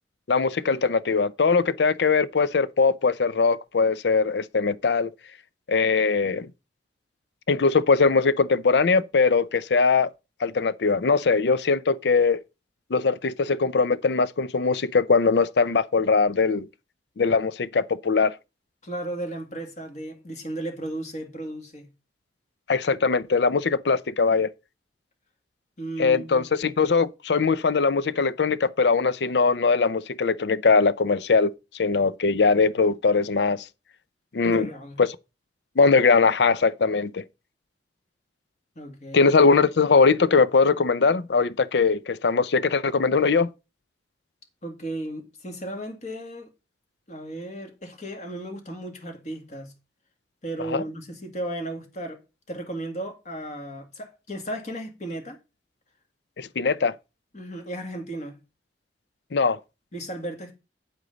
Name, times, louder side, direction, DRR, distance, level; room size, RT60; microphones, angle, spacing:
voice 1, 0.3-5.1 5.7-6.5 7.5-10.1 10.4-12.4 12.9-16.7 17.2-18.3 22.7-24.5 26.0-31.5 31.8-33.6 34.3-34.7 35.0-35.1 35.8-37.2 39.1-43.5 50.7-50.8 56.4-56.9 59.3-59.6, left 4 dB, 70° left, 0.5 m, -21 dB
voice 2, 18.8-21.9 25.8-26.5 34.4-35.0 38.8-39.3 44.6-46.5 47.1-49.7 50.4-52.2 52.5-55.4 57.3-58.4 59.9-60.6, right 1 dB, 40° left, 2.1 m, -35 dB
9.0 x 8.1 x 4.0 m
head